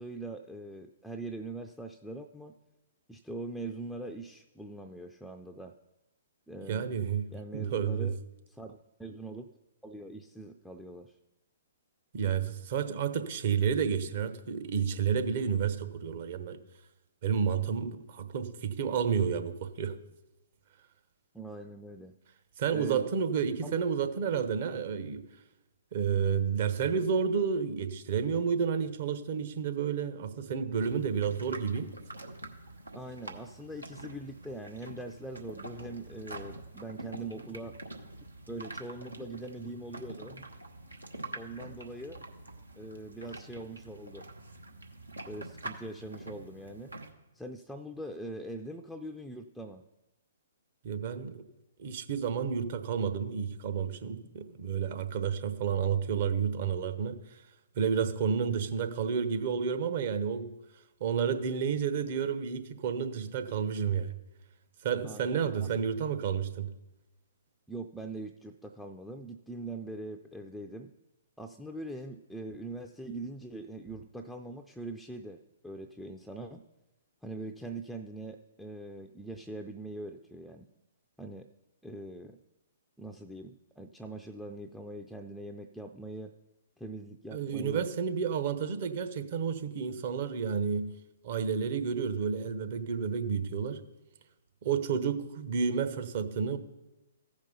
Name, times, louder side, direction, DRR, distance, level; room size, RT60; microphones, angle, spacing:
voice 1, 0.0-2.5 3.1-5.7 6.5-6.9 7.3-8.2 8.5-9.5 9.8-11.2 21.3-22.1 22.7-23.1 23.6-23.8 32.9-37.8 38.5-40.4 41.3-42.2 42.8-44.3 45.2-46.9 47.3-49.8 65.0-65.7 67.7-70.9 71.4-76.6 77.2-80.7 81.2-81.5 81.8-82.4 83.0-86.3 86.8-87.9, right 2 dB, ahead, 0.4 m, -42 dB
voice 2, 6.7-8.1 12.1-16.6 17.2-20.0 22.6-25.2 25.9-31.9 50.8-51.4 51.8-57.4 57.8-60.5 61.0-64.2 64.8-66.7 87.3-90.9 91.2-93.8 94.6-96.6, right 7 dB, 50° right, 0.9 m, -30 dB
sound 1, 30.8-47.1, right 2 dB, 90° right, 1.1 m, -45 dB
14.5 x 5.2 x 5.5 m
figure-of-eight pair, 120°, 0 cm